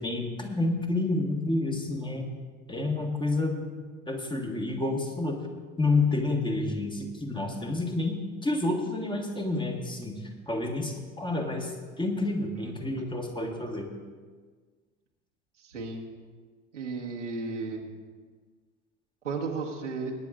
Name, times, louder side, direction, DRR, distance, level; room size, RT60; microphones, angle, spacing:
voice 1, 0.0-2.3 2.7-3.6 4.1-5.4 5.8-10.2 10.5-13.9, left 2 dB, 15° left, 2 dB, 1.6 m, -29 dB
voice 2, 12.5-13.0 15.6-16.0 16.7-17.8 19.2-20.1, right 4 dB, 80° right, -1 dB, 1.5 m, -34 dB
22.0 x 9.6 x 2.5 m, 1.5 s
figure-of-eight pair, 65°, 36 cm